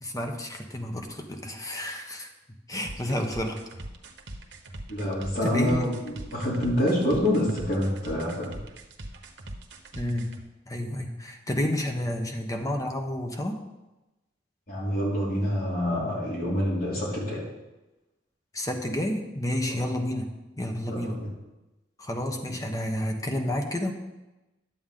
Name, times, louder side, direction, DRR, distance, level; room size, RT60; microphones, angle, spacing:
voice 1, 0.0-3.6 5.4-5.9 9.9-10.3 10.7-13.6 18.5-20.3 20.6-21.2 22.0-23.9, left 1 dB, 20° left, 4 dB, 1.0 m, -30 dB
sound 1, 2.8-10.4, right 1 dB, 85° right, 1.1 m, -41 dB
voice 2, 4.9-8.6 14.7-17.4 19.7-19.8 20.9-21.3, equal, 55° left, -5 dB, 2.9 m, -27 dB
11.0 x 7.9 x 3.8 m, 1.0 s
head